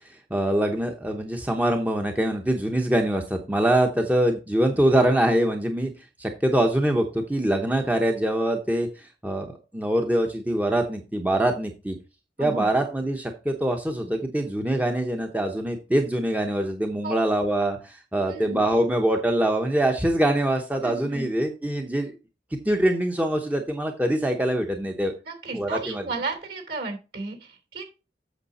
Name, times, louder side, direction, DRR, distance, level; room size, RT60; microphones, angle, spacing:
voice 1, 0.3-5.9 6.2-9.5 9.7-12.0 12.4-22.1 22.6-25.1 25.5-26.0, right 1 dB, 10° right, 4 dB, 0.8 m, -24 dB
voice 2, 18.2-18.6 20.8-21.3 25.2-27.8, right 3 dB, 60° right, 6 dB, 3.2 m, -34 dB
8.2 x 6.7 x 4.2 m, 0.30 s
head